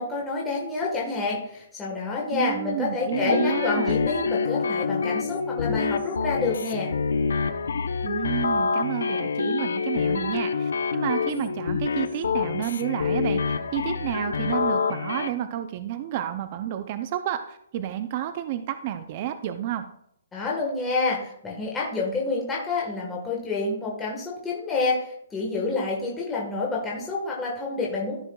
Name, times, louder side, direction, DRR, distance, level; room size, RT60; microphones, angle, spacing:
voice 1, 0.0-6.9 20.3-28.2, left 3 dB, 10° left, -4 dB, 1.4 m, -28 dB
voice 2, 2.3-3.9 8.0-19.9, right 12 dB, 35° right, 10 dB, 0.5 m, -30 dB
sound 1, 3.1-15.3, left 5 dB, 80° left, 0.7 m, -26 dB
13.5 x 6.2 x 2.3 m, 0.74 s
hypercardioid pair, 160°, 0 cm